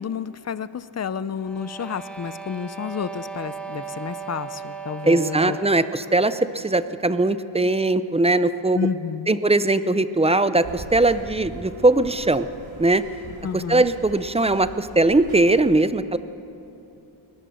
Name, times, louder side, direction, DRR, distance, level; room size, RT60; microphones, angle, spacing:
voice 1, 0.0-5.8 8.7-9.4 13.4-13.9, left 7 dB, 35° left, 16 dB, 0.5 m, -30 dB
sound 1, 1.3-6.0, right 5 dB, ahead, 1.5 m, -37 dB
voice 2, 5.0-8.9 9.3-12.5 12.8-13.0 13.5-16.2, right 2 dB, 15° right, 13 dB, 0.5 m, -20 dB
sound 2, 10.6-15.6, right 2 dB, 70° right, 4.1 m, -42 dB
22.5 x 19.0 x 6.4 m, 2.9 s
wide cardioid pair, 120°, 47 cm